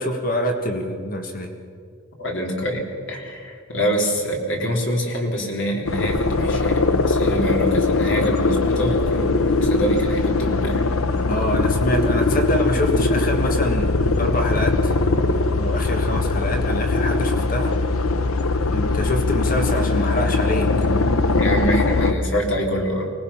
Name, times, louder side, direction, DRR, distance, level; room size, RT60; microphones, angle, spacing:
voice 1, 0.0-1.5 11.3-13.9 14.2-15.0 15.6-17.8 18.7-20.9, left 1 dB, 40° left, 3 dB, 1.6 m, -26 dB
voice 2, 2.2-10.8 21.3-23.1, equal, 60° left, 0 dB, 3.4 m, -25 dB
sound 1, 5.9-22.1, left 3 dB, 85° left, 0.9 m, -21 dB
24.5 x 18.5 x 5.8 m, 2.2 s
head